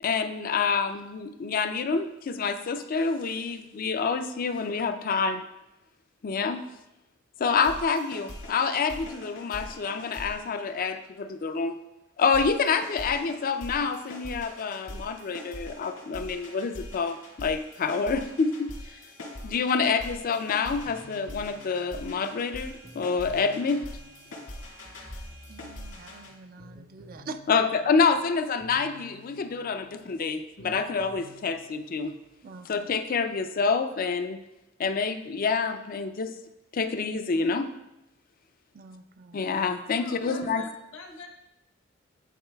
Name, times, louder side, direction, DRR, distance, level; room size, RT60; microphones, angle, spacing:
voice 1, 0.0-5.4 6.2-6.6 7.4-11.8 12.2-19.0 19.4-23.8 27.5-32.2 32.7-34.4 34.8-36.4 36.7-37.7 39.3-40.6, left 5 dB, 45° left, 9 dB, 0.4 m, -27 dB
sound 1, 7.5-11.2 12.3-26.3, left 1 dB, 80° left, 1.9 m, -43 dB
sound 2, 20.2-32.4, left 1 dB, 70° right, 1.5 m, -53 dB
voice 2, 25.5-27.4 30.6-30.7 32.4-32.9 38.7-39.6, right 4 dB, 45° right, 9 dB, 0.4 m, -44 dB
voice 3, 39.9-41.3, left 4 dB, 65° left, 2 dB, 0.9 m, -43 dB
11.0 x 4.0 x 2.3 m, 0.93 s
head